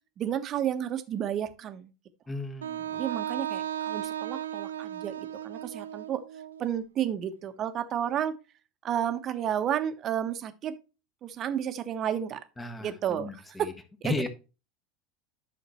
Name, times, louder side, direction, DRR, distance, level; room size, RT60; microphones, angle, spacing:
voice 1, 0.2-1.9 2.9-6.2 6.6-8.3 8.8-10.8 11.2-12.4 12.8-13.7 14.0-14.3, right 9 dB, 35° right, 10 dB, 1.2 m, -31 dB
voice 2, 2.3-3.0 12.6-12.9 13.2-13.3 14.0-14.3, left 2 dB, 15° left, 6 dB, 1.5 m, -33 dB
Wind instrument woodwind instrument, 2.6-6.6, right 10 dB, 70° right, 0.4 m, -35 dB
12.0 x 6.4 x 3.1 m, 0.31 s
figure-of-eight pair, 75°, 0 cm